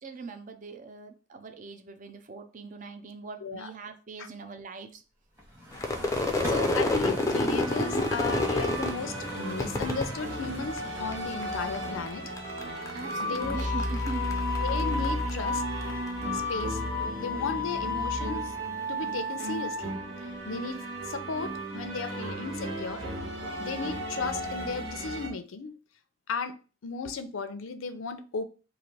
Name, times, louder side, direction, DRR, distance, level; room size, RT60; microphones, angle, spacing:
voice 1, 0.0-5.0 12.9-14.3, right 4 dB, 40° right, 8 dB, 0.5 m, -42 dB
sound 1, 5.4-12.4, equal, 15° right, 1.1 m, -42 dB
Crowd / Fireworks, 5.7-11.1 11.4-12.1 12.4-15.9, left 2 dB, 15° left, 0.4 m, -30 dB
voice 2, 6.4-12.2 12.9-13.7 14.6-15.6 16.3-16.8 17.2-18.5 18.9-20.0 20.4-20.8 21.1-23.0 23.6-25.8 26.3-26.6 26.8-28.4, left 4 dB, 90° left, 10 dB, 0.5 m, -35 dB
sound 2, 7.0-25.3, left 1 dB, 85° right, 1.4 m, -33 dB
3.2 x 2.5 x 4.1 m, 0.35 s
head